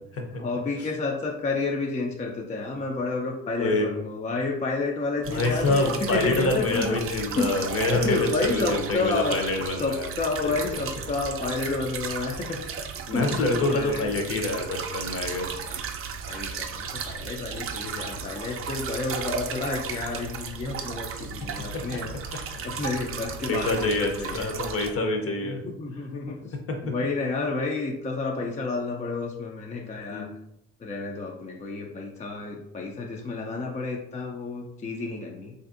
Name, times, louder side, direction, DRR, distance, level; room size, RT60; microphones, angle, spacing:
voice 1, 0.3-7.0 7.3-9.4 9.8-12.6 13.1-13.3 13.7-14.1 15.6-15.7 16.2-24.5 25.4-26.4 26.9-30.3 30.8-35.5, left 3 dB, 25° left, 0 dB, 0.4 m, -30 dB
voice 2, 3.6-3.9 5.3-10.1 13.1-15.6 22.5-22.7 23.5-25.6 26.7-26.9 30.1-30.3, left 2 dB, 50° left, 2 dB, 0.7 m, -26 dB
sound 1, 5.2-24.9, right 6 dB, 50° right, 0.4 m, -35 dB
3.1 x 2.6 x 2.5 m, 0.81 s
cardioid pair, 90°, 30 cm